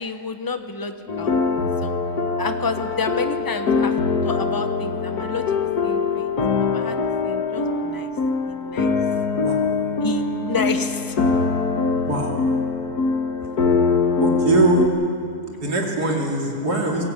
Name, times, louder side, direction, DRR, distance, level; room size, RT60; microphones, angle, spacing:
voice 1, 0.0-2.0 2.4-3.9 4.2-5.6 5.8-6.3 6.6-7.0 7.2-8.1 8.5-8.9 10.0-11.2, left 4 dB, 15° left, 8 dB, 0.9 m, -29 dB
sound 1, 1.1-14.9, left 4 dB, 90° left, 1.9 m, -23 dB
voice 2, 11.9-12.4 14.2-14.8 15.6-17.0, right 2 dB, 85° right, 0 dB, 3.4 m, -21 dB
22.0 x 15.5 x 9.0 m, 2.3 s
omnidirectional pair, 1.6 m